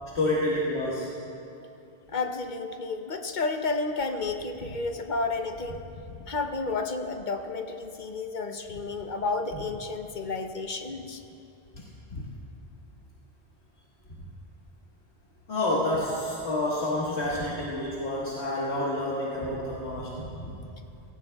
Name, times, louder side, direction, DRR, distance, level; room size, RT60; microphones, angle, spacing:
voice 1, 0.1-1.1 11.7-11.8 12.1-12.3 15.5-20.5, left 1 dB, 85° left, -6 dB, 1.7 m, -29 dB
voice 2, 2.1-5.8 6.3-11.2, left 3 dB, 50° left, 5 dB, 0.8 m, -31 dB
17.5 x 17.0 x 2.3 m, 2.7 s
omnidirectional pair, 1.1 m